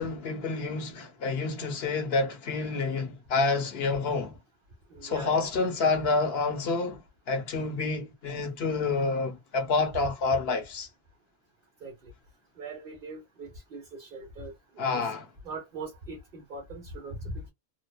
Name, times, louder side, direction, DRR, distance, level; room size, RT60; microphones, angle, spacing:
voice 1, 0.0-4.4 5.0-7.0 7.3-10.9 14.8-15.3, left 3 dB, 75° left, 1.0 m, -28 dB
voice 2, 4.9-5.5 11.8-11.9 12.6-14.5 14.9-15.0 15.4-17.5, right 3 dB, 60° right, 1.0 m, -40 dB
2.9 x 2.0 x 2.2 m
omnidirectional pair, 1.1 m